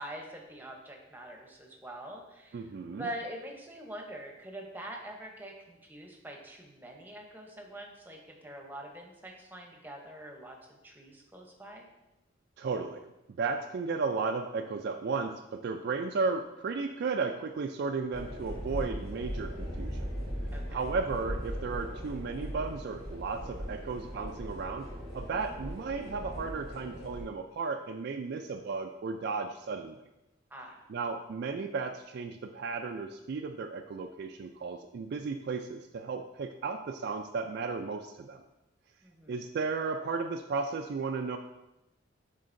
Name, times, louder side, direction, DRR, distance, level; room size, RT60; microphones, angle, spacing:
voice 1, 0.0-2.7 2.9-10.6 10.8-11.9 20.5-20.8 30.5-30.8 39.0-39.4, right 1 dB, 10° right, 1 dB, 0.8 m, -44 dB
voice 2, 2.5-3.1 12.6-13.0 13.4-20.1 20.7-24.9 25.1-30.0 30.9-38.4 39.3-41.4, right 4 dB, 55° right, 5 dB, 0.3 m, -34 dB
sound 1, 18.1-27.2, equal, 60° left, 2.3 m, -39 dB
10.5 x 3.8 x 2.6 m, 0.94 s
head